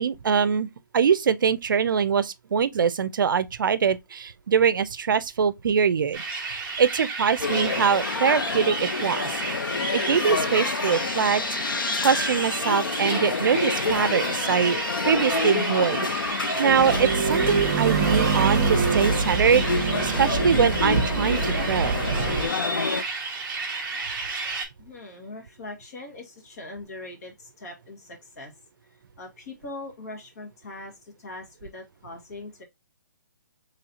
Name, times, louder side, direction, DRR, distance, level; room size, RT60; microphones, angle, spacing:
voice 1, 0.0-9.3 9.9-11.4 12.0-14.8 15.1-22.0, right 6 dB, 75° right, 0.4 m, -23 dB
sound 1, 6.1-24.6, right 4 dB, 15° right, 1.0 m, -32 dB
sound 2, 7.4-23.0, left 5 dB, 85° left, 0.6 m, -29 dB
sound 3, 16.7-22.5, right 5 dB, 45° right, 0.8 m, -25 dB
voice 2, 24.8-28.5 29.2-32.6, left 2 dB, 50° left, 1.7 m, -41 dB
4.0 x 3.2 x 2.7 m
hypercardioid pair, 160°, 11 cm